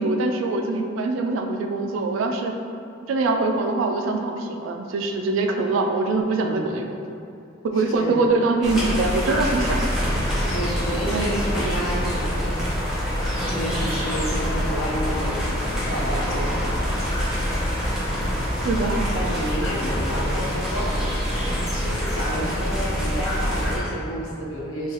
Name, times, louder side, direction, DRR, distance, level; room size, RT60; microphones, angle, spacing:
voice 1, 0.0-2.5 3.1-6.9 7.6-9.9 11.1-11.3 18.6-19.1, right 3 dB, 70° right, 4 dB, 0.3 m, -23 dB
voice 2, 6.4-6.7 7.7-8.3 10.5-12.7 13.5-16.7 18.9-24.9, equal, 80° left, -3 dB, 0.6 m, -31 dB
sound 1, 8.6-23.8, equal, ahead, 0.6 m, -25 dB
3.1 x 2.3 x 3.7 m, 2.5 s
head